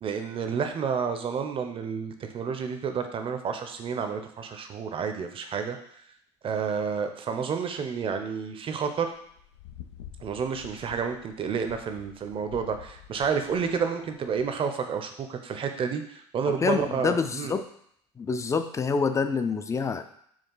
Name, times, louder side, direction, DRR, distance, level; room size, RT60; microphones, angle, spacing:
voice 1, 0.0-5.8 6.4-9.1 10.2-17.5, right 6 dB, 40° right, 7 dB, 0.6 m, -30 dB
sound 1, 9.0-14.5, left 9 dB, 85° left, 0.4 m, -48 dB
voice 2, 16.5-17.6 18.2-20.0, left 5 dB, 20° left, 9 dB, 0.4 m, -27 dB
4.5 x 2.4 x 3.9 m, 0.67 s
hypercardioid pair, 75°, 14 cm